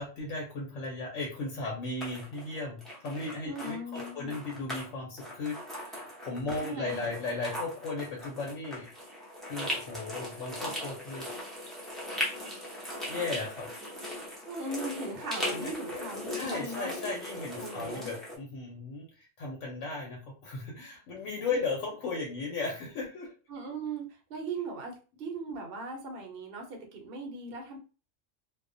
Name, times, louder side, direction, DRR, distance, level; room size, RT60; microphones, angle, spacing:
voice 1, 0.0-8.9 9.4-11.3 13.1-13.7 15.5-15.8 16.3-23.3, left 3 dB, 85° left, -2 dB, 1.0 m, -36 dB
sound 1, 2.0-4.9 5.2-18.4, left 1 dB, ahead, 0.4 m, -39 dB
voice 2, 3.4-4.4 6.6-7.2 14.5-16.9 17.6-18.1 23.5-27.8, right 3 dB, 55° right, 2 dB, 0.8 m, -39 dB
2.3 x 2.1 x 2.5 m, 0.35 s
omnidirectional pair, 1.3 m